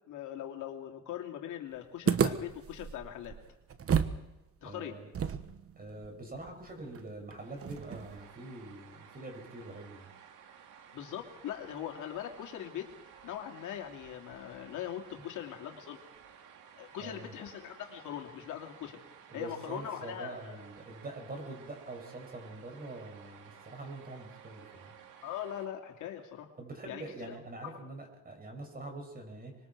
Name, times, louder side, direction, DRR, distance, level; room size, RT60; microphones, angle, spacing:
voice 1, 0.1-3.4 4.6-5.0 10.9-12.9 13.2-16.0 16.8-19.0 19.3-20.6 25.2-26.5 26.9-27.8, left 10 dB, 80° left, 3 dB, 2.6 m, -41 dB
sound 1, 2.1-4.2 4.5-4.6 5.1-8.3, right 7 dB, 50° right, 1.4 m, -33 dB
voice 2, 4.6-5.1 5.8-10.1 17.0-17.4 19.3-24.9 26.6-29.6, right 2 dB, 30° right, 3 dB, 6.9 m, -44 dB
sound 2, 7.4-25.7, right 8 dB, 80° right, 2.4 m, -55 dB
25.5 x 21.5 x 4.7 m, 1.0 s
cardioid pair, 90°, 30 cm